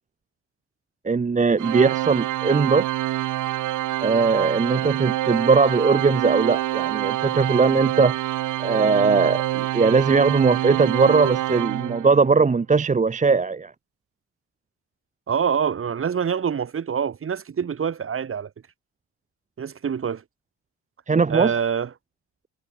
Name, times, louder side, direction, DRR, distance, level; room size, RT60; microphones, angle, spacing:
voice 1, 1.0-2.9 4.0-8.2 8.6-13.7 21.1-21.5, right 4 dB, 25° right, 1.1 m, -20 dB
Organ, 1.6-12.4, right 15 dB, 85° right, 2.9 m, -26 dB
voice 2, 15.3-18.5 19.6-20.2 21.3-21.9, right 7 dB, 45° right, 3.0 m, -25 dB
cardioid pair, 90°, 30 cm